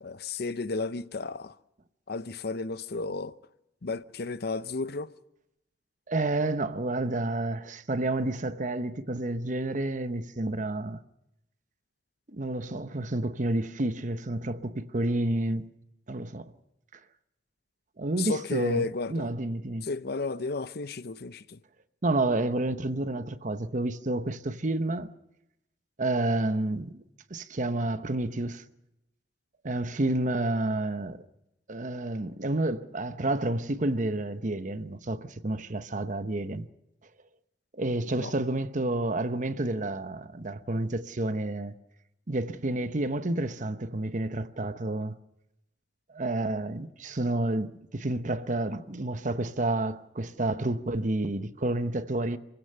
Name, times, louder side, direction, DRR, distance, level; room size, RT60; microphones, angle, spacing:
voice 1, 0.0-1.6 2.1-3.3 3.8-5.1 18.2-19.3 19.8-21.6 38.1-38.3, left 3 dB, 65° left, 0.7 m, -33 dB
voice 2, 6.1-11.0 12.3-15.7 16.1-16.5 18.0-19.9 22.0-25.1 26.0-27.0 27.3-28.6 29.6-31.2 31.7-36.7 37.7-41.7 42.3-45.2 46.1-52.4, right 2 dB, 45° right, 1.0 m, -30 dB
26.5 x 16.0 x 6.7 m
head